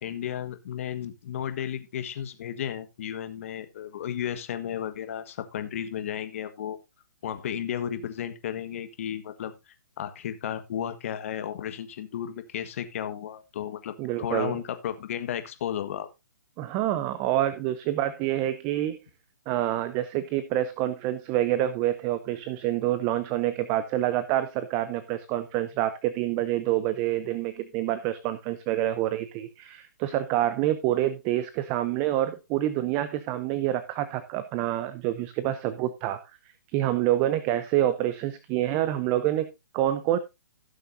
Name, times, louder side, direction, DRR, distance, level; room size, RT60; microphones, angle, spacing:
voice 1, 0.0-6.8 7.2-9.5 10.0-16.1, left 9 dB, 45° left, 10 dB, 1.5 m, -33 dB
voice 2, 14.0-14.6 16.6-19.0 19.5-36.2 36.7-40.2, right 13 dB, 20° right, 13 dB, 0.6 m, -27 dB
16.5 x 6.9 x 2.7 m, 0.24 s
hypercardioid pair, 155°, 10 cm